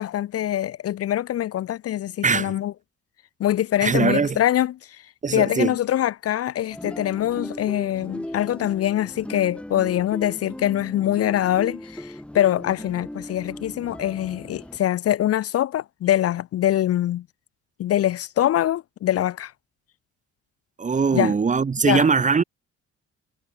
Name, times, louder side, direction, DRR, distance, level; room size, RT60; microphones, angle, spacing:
voice 1, 0.0-2.7 3.4-4.7 5.3-17.2 17.8-19.5 21.1-21.3 21.8-22.1, left 12 dB, 55° left, 0.5 m, -23 dB
voice 2, 2.2-2.6 3.8-4.4 5.2-5.8 20.8-22.4, right 5 dB, 25° right, 0.7 m, -21 dB
sound 1, 6.7-14.8, left 1 dB, 5° left, 0.9 m, -37 dB
cardioid pair, 90°, 30 cm